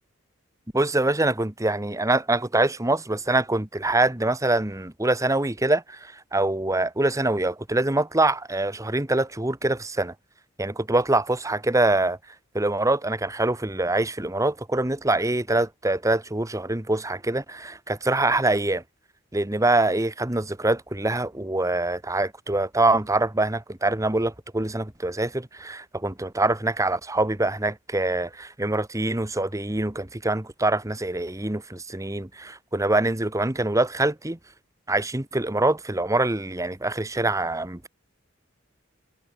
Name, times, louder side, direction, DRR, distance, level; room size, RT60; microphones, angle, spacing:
voice 1, 0.7-10.1 10.6-12.2 12.5-18.8 19.3-34.4 34.9-37.9, right 2 dB, 15° right, 1.3 m, -24 dB
head